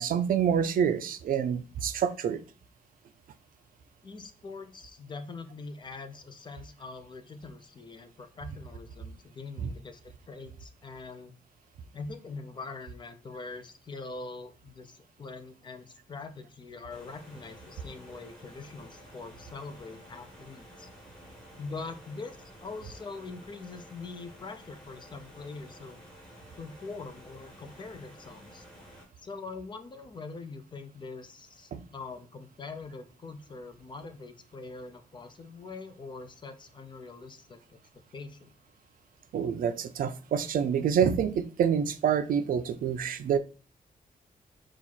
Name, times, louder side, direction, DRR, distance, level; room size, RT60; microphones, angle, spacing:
voice 1, 0.0-2.4 9.6-9.7 31.7-31.8 39.3-43.4, right 8 dB, 80° right, 11 dB, 0.4 m, -27 dB
voice 2, 4.0-11.3 11.9-20.9 21.6-26.0 26.6-28.6 29.2-38.5, left 3 dB, 35° left, 9 dB, 0.5 m, -43 dB
sound 1, 16.9-29.1, equal, 5° left, 1.3 m, -51 dB
4.0 x 2.4 x 4.5 m, 0.37 s
wide cardioid pair, 150°, 14 cm